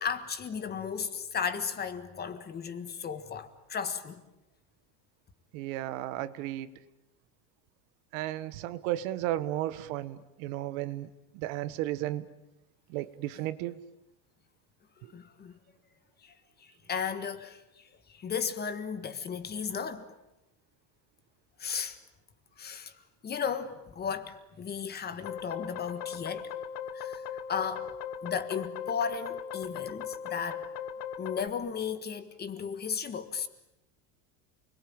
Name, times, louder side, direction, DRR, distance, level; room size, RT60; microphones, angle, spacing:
voice 1, 0.0-4.2 15.1-15.5 16.2-16.3 16.9-17.6 18.1-20.1 21.6-22.0 22.6-22.9 23.2-26.5 26.9-27.2 27.5-27.9 28.2-30.6 31.2-33.5, left 6 dB, 25° left, 1.6 m, -35 dB
voice 2, 5.5-6.7 8.1-12.3 12.9-13.8, right 14 dB, 75° right, 1.5 m, -34 dB
sound 1, 25.2-31.5, left 8 dB, 55° left, 1.3 m, -38 dB
29.0 x 22.0 x 8.8 m
cardioid pair, 155°, 42 cm